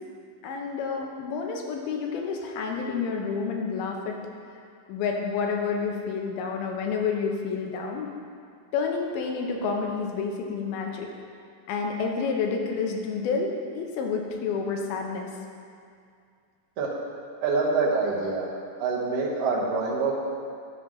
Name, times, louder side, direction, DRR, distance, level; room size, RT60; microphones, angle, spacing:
voice 1, 0.4-4.2 4.9-8.1 8.7-11.1 11.7-15.3, left 5 dB, 80° left, 1 dB, 2.4 m, -29 dB
voice 2, 17.4-18.5 18.8-20.2, right 4 dB, 90° right, -5 dB, 1.4 m, -25 dB
11.0 x 3.9 x 6.2 m, 2.3 s
omnidirectional pair, 4.7 m